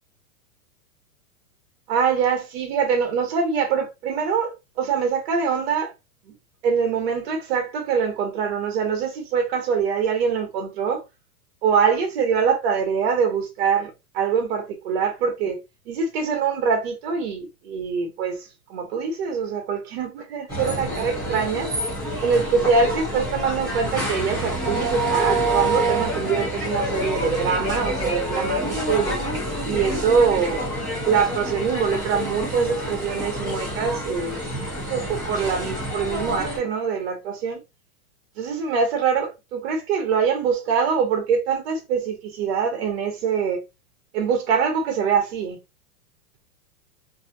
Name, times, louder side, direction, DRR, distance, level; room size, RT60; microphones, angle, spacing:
voice 1, 1.9-5.9 6.3-6.4 6.6-11.0 11.6-15.6 15.9-21.7 22.2-29.2 29.6-30.6 31.0-34.4 34.9-37.6 38.4-43.6 44.1-45.6, right 6 dB, 40° right, 1.0 m, -24 dB
sound 1, 20.5-36.6, right 1 dB, 5° left, 0.8 m, -27 dB
2.7 x 2.3 x 2.6 m
supercardioid pair, 170°, 46 cm